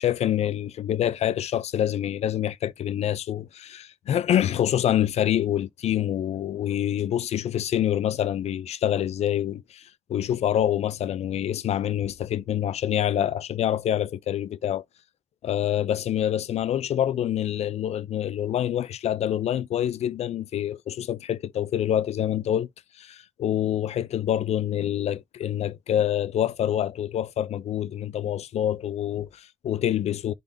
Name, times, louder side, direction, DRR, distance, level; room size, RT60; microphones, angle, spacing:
voice 1, 0.0-14.8 15.4-22.7 23.0-30.3, left 11 dB, 75° left, 0.5 m, -26 dB
10.5 x 3.9 x 2.7 m
wide cardioid pair, 125°, 11 cm